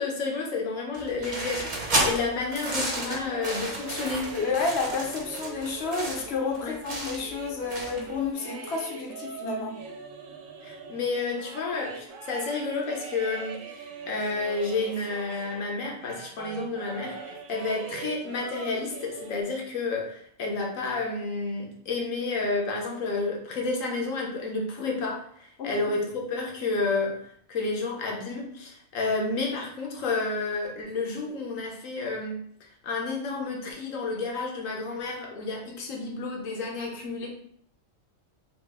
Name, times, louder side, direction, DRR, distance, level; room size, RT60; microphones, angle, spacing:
voice 1, 0.0-4.3 6.6-6.8 10.6-27.2 27.5-37.3, left 3 dB, 80° left, 1.2 m, -31 dB
sound 1, 0.9-8.2, right 1 dB, 40° right, 0.9 m, -32 dB
sound 2, 3.0-15.7 16.0-19.4, right 4 dB, 80° right, 0.9 m, -42 dB
voice 2, 4.3-9.8 25.6-26.0, left 4 dB, 60° left, 0.9 m, -30 dB
3.2 x 2.8 x 3.4 m
omnidirectional pair, 1.4 m